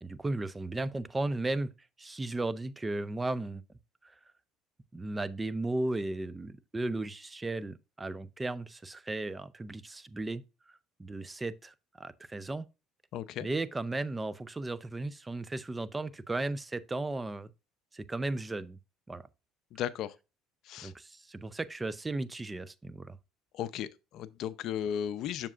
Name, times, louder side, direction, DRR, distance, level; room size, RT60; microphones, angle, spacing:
voice 1, 0.0-1.7 2.0-3.6 4.0-4.1 4.9-10.4 11.0-12.7 13.4-17.5 17.9-18.8 19.1-19.2 20.8-23.2, right 2 dB, 15° right, 0.5 m, -35 dB
voice 2, 13.1-13.5 19.7-20.1 20.6-20.9 23.5-25.5, left 10 dB, 65° left, 0.6 m, -35 dB
7.3 x 6.8 x 2.5 m
supercardioid pair, 95°, 0 cm